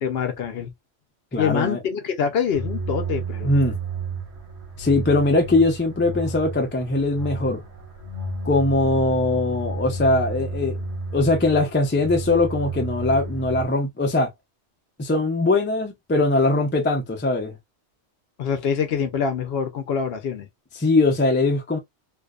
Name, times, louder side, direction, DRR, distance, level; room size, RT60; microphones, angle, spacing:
voice 1, 0.0-0.7 1.4-3.6 18.4-20.5, left 7 dB, 65° left, 0.7 m, -25 dB
voice 2, 1.3-1.8 3.4-3.8 4.8-7.6 8.4-10.8 11.1-14.3 15.0-17.5 20.8-21.8, left 2 dB, 20° left, 0.3 m, -21 dB
sound 1, 2.5-13.6, right 2 dB, 65° right, 1.1 m, -31 dB
2.5 x 2.1 x 2.3 m
omnidirectional pair, 1.2 m